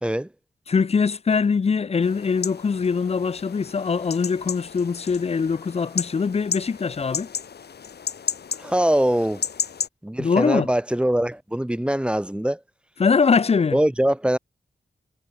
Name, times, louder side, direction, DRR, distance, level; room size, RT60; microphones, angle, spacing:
voice 1, 0.7-7.3 10.2-10.7 13.0-13.8, left 5 dB, 40° left, 0.6 m, -22 dB
sound 1, 2.0-9.9, left 7 dB, 75° left, 2.4 m, -33 dB
voice 2, 8.6-9.4 10.0-12.6 13.7-14.4, right 1 dB, 5° right, 2.5 m, -22 dB
wide cardioid pair, 85°, 17 cm